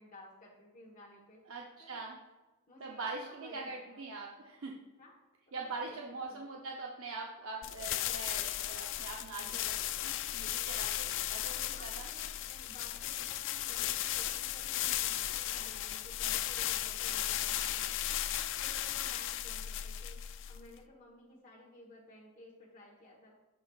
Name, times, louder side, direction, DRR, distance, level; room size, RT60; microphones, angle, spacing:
voice 1, 0.0-1.4 1.8-2.1 2.7-4.1 5.0-5.1 5.5-6.5 9.4-9.7 11.7-23.4, left 1 dB, 40° left, -3 dB, 1.2 m, -56 dB
voice 2, 1.5-2.2 2.8-4.8 5.5-9.7 10.0-12.1, right 3 dB, 65° right, -1 dB, 0.7 m, -43 dB
sound 1, 7.6-20.8, left 12 dB, 60° left, 0.4 m, -36 dB
14.0 x 5.5 x 2.4 m, 1.1 s
head